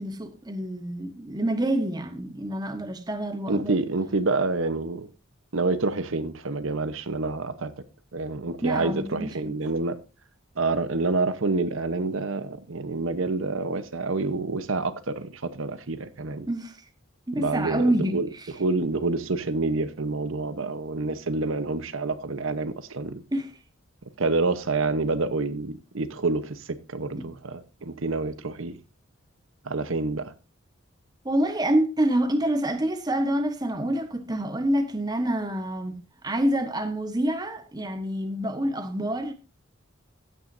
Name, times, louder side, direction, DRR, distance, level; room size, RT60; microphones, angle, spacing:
voice 1, 0.0-3.8 8.6-9.5 16.5-16.8 17.3-18.5 23.3-23.5 27.2-27.3 31.2-35.9 36.2-39.3, right 1 dB, 20° right, 1.3 m, -27 dB
voice 2, 3.5-5.1 5.5-7.7 8.1-10.0 10.6-16.5 17.4-18.3 18.6-23.2 24.2-26.6 26.9-28.8 29.7-30.2, right 3 dB, 75° right, 0.9 m, -27 dB
16.0 x 9.1 x 2.6 m
head